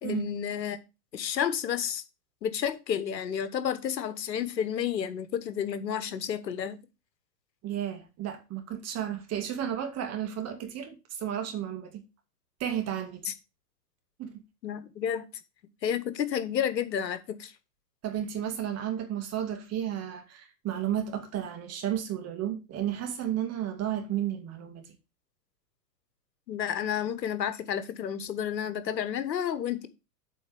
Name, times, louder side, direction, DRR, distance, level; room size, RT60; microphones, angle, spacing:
voice 1, 0.0-0.8 1.1-2.0 2.4-6.8 13.2-13.3 14.6-15.3 15.8-17.5 26.5-29.9, left 8 dB, 85° left, 1.4 m, -31 dB
voice 2, 7.6-12.0 12.6-13.3 14.2-14.4 18.0-24.8, right 10 dB, 30° right, 2.2 m, -33 dB
8.3 x 4.3 x 7.0 m
hypercardioid pair, 115°, 49 cm